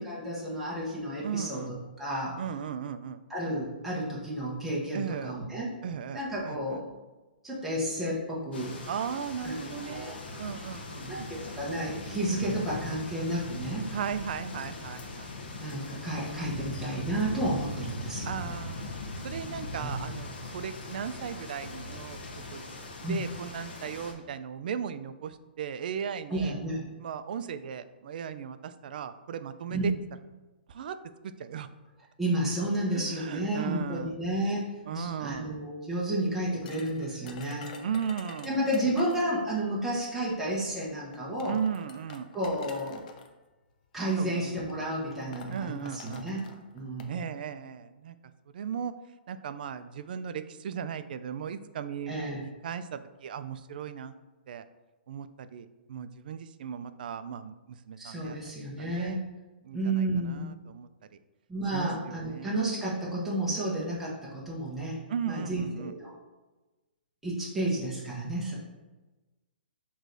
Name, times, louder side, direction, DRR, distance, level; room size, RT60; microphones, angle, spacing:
voice 1, 0.0-2.3 3.3-5.7 6.1-6.8 7.4-8.8 9.4-10.2 11.1-13.9 15.6-18.4 19.8-20.1 23.0-23.2 26.3-26.8 29.7-29.9 32.2-37.7 38.4-41.6 42.3-43.0 43.9-47.1 52.1-52.4 58.0-59.3 59.7-60.5 61.5-65.0 65.3-66.1 67.2-68.5, right 1 dB, 5° right, -7 dB, 0.9 m, -31 dB
voice 2, 1.2-1.7 2.4-3.2 4.9-5.3 5.8-6.8 8.9-11.3 13.9-15.3 18.2-18.9 19.2-22.7 23.0-26.5 27.0-29.9 30.7-31.0 31.2-31.7 32.9-34.1 34.9-35.5 37.8-38.6 41.5-42.3 44.2-44.5 45.5-46.2 47.1-48.2 48.5-48.9 49.3-52.2 52.4-54.2 54.5-54.7 55.1-58.4 58.8-59.2 59.6-60.9 61.7-62.5 65.1-65.9, right 7 dB, 55° right, 11 dB, 0.3 m, -36 dB
sound 1, 8.5-24.1, left 2 dB, 70° left, 1.0 m, -40 dB
sound 2, 36.7-39.4 40.5-40.6 41.1-43.3 44.2-44.4 44.7-44.8 45.1-47.1, left 5 dB, 45° left, 0.5 m, -48 dB
6.2 x 3.1 x 2.6 m, 1.2 s
hypercardioid pair, 150°, 6 cm